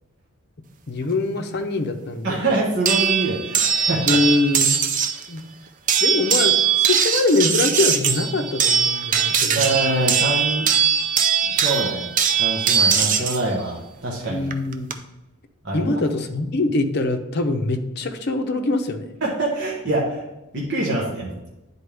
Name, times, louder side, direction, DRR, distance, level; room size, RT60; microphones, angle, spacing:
voice 1, 0.9-2.4 4.1-4.8 5.3-5.4 6.0-9.7 14.3-14.9 15.7-19.2, left 2 dB, 50° left, 5 dB, 0.7 m, -23 dB
voice 2, 2.2-4.2 9.5-10.7 11.4-12.1 12.4-14.5 15.6-16.0 19.2-20.2 20.5-21.3, right 2 dB, 55° right, -4 dB, 1.2 m, -25 dB
sound 1, 2.9-5.2 5.9-13.4 14.5-14.9, right 7 dB, 35° right, 0.5 m, -20 dB
10.0 x 4.3 x 3.4 m, 0.98 s
head